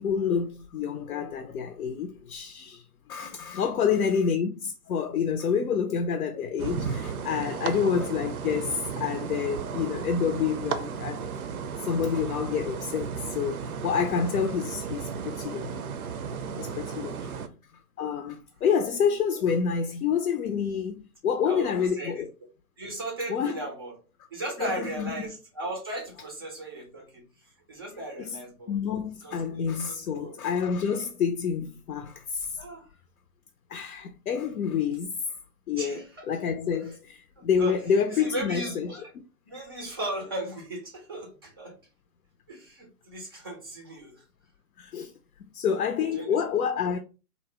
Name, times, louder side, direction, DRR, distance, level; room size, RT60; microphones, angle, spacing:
voice 1, 0.0-2.8 3.1-11.3 11.8-15.8 16.6-17.4 18.0-22.3 23.3-23.6 24.6-25.3 28.2-28.4 28.7-32.6 33.7-35.2 35.7-39.0 44.8-45.1 45.5-47.0, left 7 dB, 75° left, 0.5 m, -28 dB
sound 1, 6.6-17.5, right 6 dB, 70° right, 0.6 m, -34 dB
voice 2, 16.9-17.4 21.4-22.3 22.8-23.9 24.3-28.8 29.2-30.4 32.6-32.9 35.8-36.3 36.7-37.0 37.4-37.7 38.1-39.1 39.5-41.8 42.5-44.2 46.0-46.3, right 1 dB, 15° right, 0.4 m, -37 dB
2.7 x 2.0 x 3.1 m
figure-of-eight pair, 125°, 46 cm